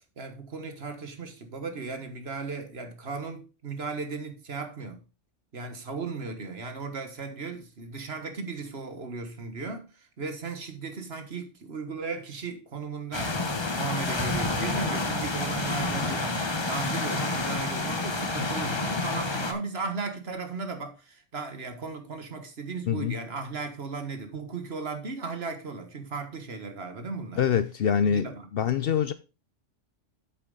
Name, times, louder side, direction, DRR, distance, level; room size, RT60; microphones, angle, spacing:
voice 1, 0.0-5.0 5.5-13.4 13.7-16.4 16.7-27.4 28.0-28.7, right 4 dB, 55° right, 1.6 m, -36 dB
sound 1, 13.1-19.5, left 2 dB, 25° left, 0.9 m, -29 dB
voice 2, 27.4-29.1, left 8 dB, 60° left, 0.7 m, -25 dB
8.6 x 6.9 x 3.9 m
omnidirectional pair, 1.3 m